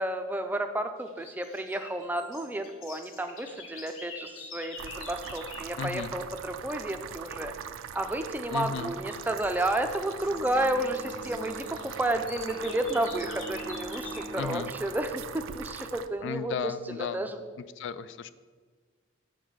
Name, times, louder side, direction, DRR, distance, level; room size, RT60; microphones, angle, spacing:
voice 1, 0.0-7.5 7.9-17.4, right 1 dB, 10° right, 7 dB, 0.4 m, -31 dB
sound 1, 1.0-5.7 8.0-8.3 8.8-14.4, left 4 dB, 90° left, 1.1 m, -47 dB
sound 2, 4.8-16.1, right 8 dB, 85° right, 0.4 m, -41 dB
voice 2, 5.8-6.1 8.5-8.9 14.4-14.7 16.2-17.2 17.8-18.3, left 6 dB, 65° left, 14 dB, 0.3 m, -34 dB
Bowed string instrument, 10.1-15.9, equal, 40° left, 0.7 m, -45 dB
8.3 x 3.9 x 6.2 m, 1.5 s
head